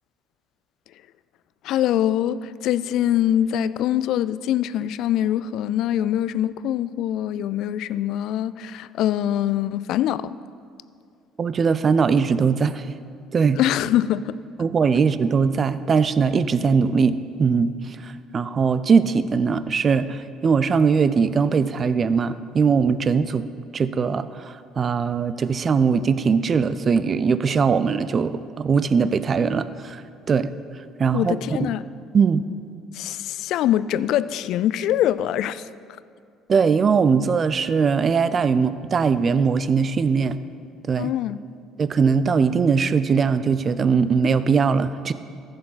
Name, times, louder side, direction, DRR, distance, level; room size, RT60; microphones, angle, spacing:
voice 1, 1.6-10.4 13.5-14.3 31.1-31.8 32.9-35.7 41.0-41.4, left 11 dB, 65° left, 16 dB, 0.3 m, -23 dB
voice 2, 11.4-12.9 13.3-13.6 14.6-23.4 23.7-30.0 30.3-30.5 31.0-31.7 32.1-32.4 36.5-40.4 40.9-41.1 41.8-45.1, right 5 dB, 40° right, 14 dB, 0.5 m, -20 dB
14.5 x 6.5 x 4.1 m, 2.3 s
hypercardioid pair, 55°, 0 cm